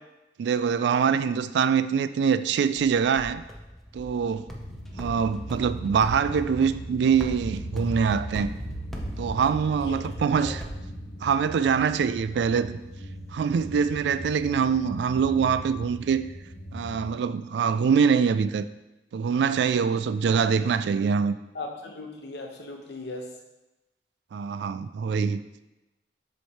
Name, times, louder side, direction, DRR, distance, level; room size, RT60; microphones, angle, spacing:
voice 1, 0.4-3.4 3.9-4.5 5.0-8.5 9.2-10.6 11.2-12.8 13.3-16.3 16.7-18.7 19.1-21.4 24.3-25.4, right 6 dB, 70° right, 13 dB, 0.3 m, -24 dB
sound 1, 2.8-11.5, equal, ahead, 0.6 m, -40 dB
sound 2, 4.5-17.1, right 1 dB, 85° left, 1.3 m, -39 dB
voice 2, 21.5-23.4, left 2 dB, 65° left, 2 dB, 0.9 m, -38 dB
7.6 x 3.3 x 4.2 m, 1.0 s
head